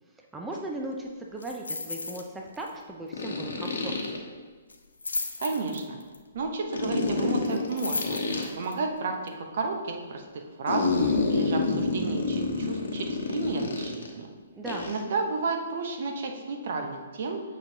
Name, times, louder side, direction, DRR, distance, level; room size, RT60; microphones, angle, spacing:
voice 1, 0.2-4.2 14.5-14.9, right 1 dB, 10° right, 0 dB, 0.6 m, -37 dB
sound 1, 0.5-0.6 3.1-4.2 6.7-8.5 10.7-14.1 14.6-15.0, left 3 dB, 65° left, 1.1 m, -28 dB
sound 2, 1.4-2.3 2.5-2.8 3.1-3.2 4.7-6.2 7.4-8.7 9.3-9.4, left 3 dB, 80° left, 0.6 m, -35 dB
voice 2, 5.4-6.0 6.3-8.2 8.6-10.9 11.3-14.3 14.8-17.4, right 3 dB, 55° right, 3 dB, 0.9 m, -32 dB
8.4 x 5.2 x 2.8 m, 1.4 s
figure-of-eight pair, 125°, 0 cm